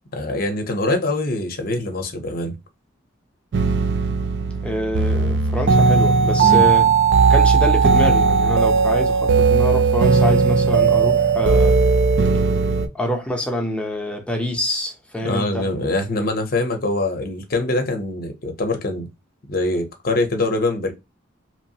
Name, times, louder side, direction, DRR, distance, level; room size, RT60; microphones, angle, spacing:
voice 1, 0.1-2.6 6.4-6.7 15.2-19.1 19.5-20.9, left 2 dB, 50° left, 0.7 m, -23 dB
sound 1, 3.5-12.9, right 5 dB, 65° right, 0.4 m, -17 dB
voice 2, 4.6-6.9 7.3-11.8 12.9-15.7, left 1 dB, 5° left, 0.5 m, -26 dB
3.0 x 2.0 x 2.7 m
head